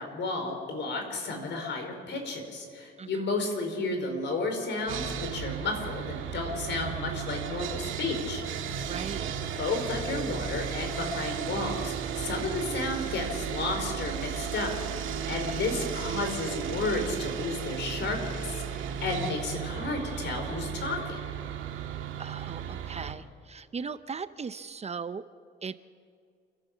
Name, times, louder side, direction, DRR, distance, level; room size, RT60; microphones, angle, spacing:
voice 1, 0.0-8.4 9.6-14.7 15.2-21.2, left 3 dB, 65° left, 4 dB, 4.9 m, -32 dB
Sawing, 4.9-23.1, right 8 dB, 80° right, 1.9 m, -35 dB
voice 2, 8.9-9.3 15.5-15.6 22.2-25.2 25.6-25.7, right 5 dB, 35° right, 13 dB, 0.7 m, -38 dB
29.5 x 12.0 x 7.4 m, 2.2 s
cardioid pair, 90°, 20 cm